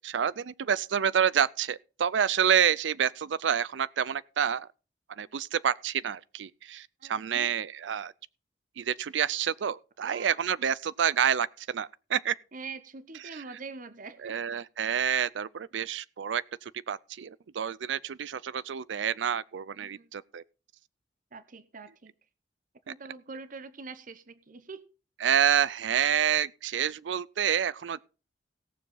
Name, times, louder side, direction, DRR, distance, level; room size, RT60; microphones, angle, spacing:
voice 1, 0.0-4.7 5.2-8.1 8.8-12.4 13.3-13.4 14.2-20.4 25.2-28.0, right 8 dB, 85° right, 0.5 m, -28 dB
voice 2, 7.0-7.5 10.0-10.5 12.5-14.3 19.8-20.1 21.3-22.1 22.9-24.8, right 4 dB, 50° right, 1.0 m, -44 dB
18.0 x 7.2 x 3.9 m
head